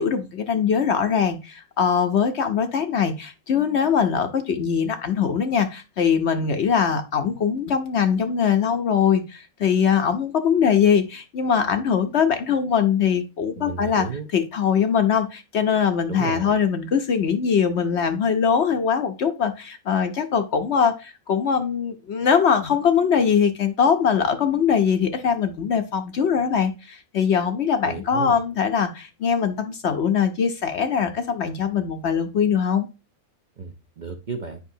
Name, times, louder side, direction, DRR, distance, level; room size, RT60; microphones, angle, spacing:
voice 1, 0.0-14.1 14.3-32.9, left 7 dB, 60° left, 8 dB, 0.9 m, -22 dB
voice 2, 13.6-14.3 16.1-16.5 27.8-28.4 33.6-34.6, right 5 dB, 45° right, 5 dB, 0.6 m, -33 dB
8.1 x 5.5 x 2.7 m, 0.28 s
omnidirectional pair, 1.5 m